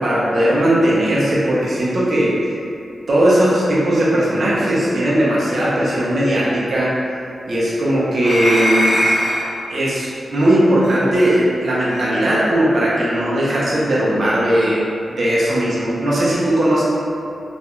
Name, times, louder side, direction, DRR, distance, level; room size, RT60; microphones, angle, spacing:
voice 1, 0.0-2.6 3.1-6.9 7.5-9.0 9.7-16.8, right 1 dB, 55° right, -7 dB, 0.5 m, -18 dB
sound 1, 8.2-9.5 10.8-11.0 11.9-12.1, equal, 85° left, 0.5 m, -20 dB
2.3 x 2.1 x 2.9 m, 2.5 s
wide cardioid pair, 155°, 0 cm